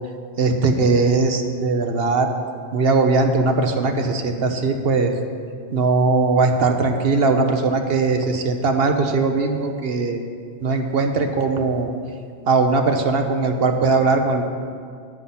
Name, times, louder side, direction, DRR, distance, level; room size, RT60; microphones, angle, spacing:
voice 1, 0.4-2.3 2.7-5.1 5.7-10.2 10.6-11.9 12.5-14.5, right 3 dB, 65° right, 5 dB, 1.1 m, -19 dB
9.9 x 9.5 x 5.8 m, 2.2 s
omnidirectional pair, 1.1 m